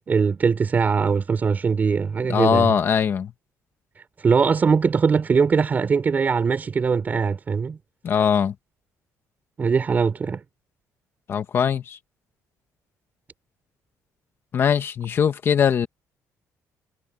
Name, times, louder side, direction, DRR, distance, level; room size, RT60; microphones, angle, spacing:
voice 1, 0.0-2.7 4.2-7.8 9.6-10.4, right 5 dB, 30° right, 4.5 m, -21 dB
voice 2, 2.3-3.3 8.0-8.5 11.3-12.0 14.5-15.9, left 7 dB, 40° left, 1.4 m, -21 dB
cardioid pair, 155°, 6 cm